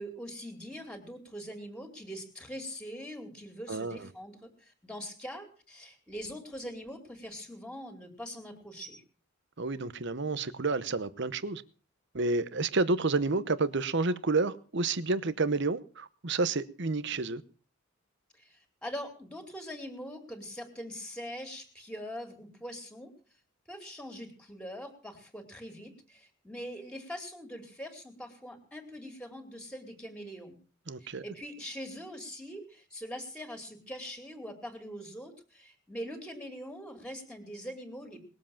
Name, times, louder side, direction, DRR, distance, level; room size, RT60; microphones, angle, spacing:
voice 1, 0.0-9.0 18.3-23.1 23.7-30.6 31.0-38.2, equal, 5° left, 3.0 m, -43 dB
voice 2, 3.7-4.1 9.6-11.6 12.1-17.4 30.9-31.2, right 3 dB, 55° right, 0.9 m, -30 dB
20.5 x 7.7 x 7.2 m
head